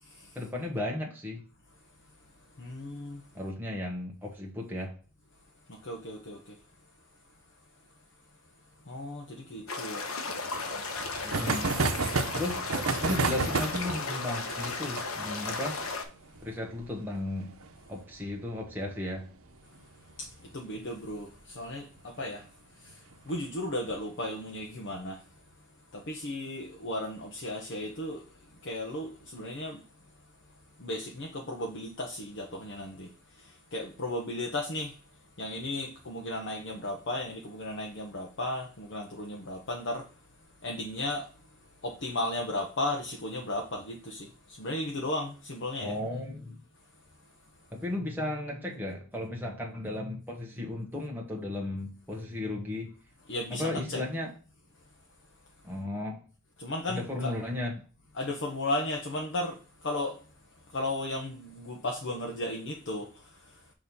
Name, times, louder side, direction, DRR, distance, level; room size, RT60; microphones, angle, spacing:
voice 1, 0.3-1.4 3.3-4.9 11.2-11.7 12.3-12.7 13.0-15.8 16.4-17.5 17.9-19.3 45.8-46.6 47.7-52.9 53.5-54.3 55.6-56.2 56.9-57.8, left 1 dB, 10° right, 1.2 m, -35 dB
voice 2, 2.6-3.2 5.7-6.6 8.9-10.0 20.2-22.5 22.8-25.2 25.9-28.2 28.6-29.8 30.8-35.0 35.4-40.1 40.6-41.3 41.8-45.9 53.3-54.0 56.6-57.3 58.2-60.2 60.7-63.5, left 1 dB, 60° left, 0.9 m, -35 dB
sound 1, 9.7-16.0, left 4 dB, 90° left, 1.2 m, -35 dB
sound 2, 10.3-19.5 19.8-19.9 20.1-20.2 20.5-20.6 22.0-22.2 22.9-23.3, right 4 dB, 90° right, 0.8 m, -33 dB
6.4 x 3.1 x 5.3 m
head